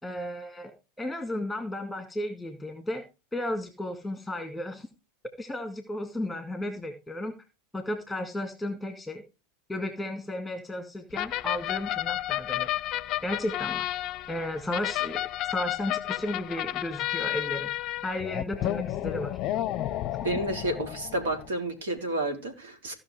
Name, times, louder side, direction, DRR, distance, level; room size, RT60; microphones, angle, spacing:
voice 1, 0.0-0.7 1.0-3.0 3.3-4.9 5.4-7.3 7.7-9.2 9.7-12.7 13.2-13.9 14.3-15.2 15.5-17.7 18.0-19.4, left 1 dB, 5° left, 7 dB, 2.1 m, -34 dB
sound 1, 11.1-21.5, left 14 dB, 40° left, 0.6 m, -32 dB
voice 2, 20.2-22.9, right 1 dB, 70° right, 5 dB, 3.6 m, -30 dB
16.5 x 5.8 x 4.9 m, 0.29 s
figure-of-eight pair, 85°, 0 cm